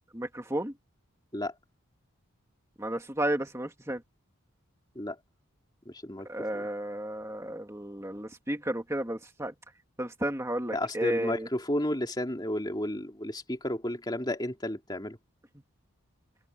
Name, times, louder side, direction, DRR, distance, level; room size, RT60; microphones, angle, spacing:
voice 1, 0.1-0.7 2.8-4.0 6.3-9.5 10.0-11.5, right 1 dB, 15° right, 2.2 m, -32 dB
voice 2, 5.9-6.3 6.5-6.6 10.7-15.2, left 1 dB, 20° left, 2.9 m, -32 dB
open air
head